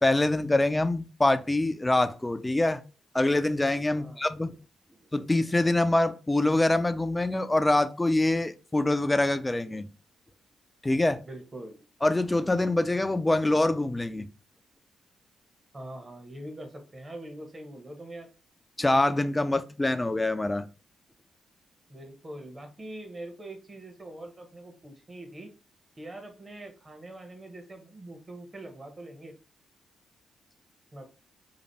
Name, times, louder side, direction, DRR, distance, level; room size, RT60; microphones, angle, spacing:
voice 1, 0.0-2.8 3.1-4.5 5.1-9.9 10.8-11.2 12.0-14.3 18.8-20.6, left 2 dB, 20° left, 0.5 m, -25 dB
voice 2, 11.2-11.8 15.7-18.3 21.9-25.5 26.0-29.4 30.9-31.0, right 1 dB, 30° right, 1.2 m, -43 dB
3.1 x 2.5 x 4.1 m
hypercardioid pair, 40°, 0 cm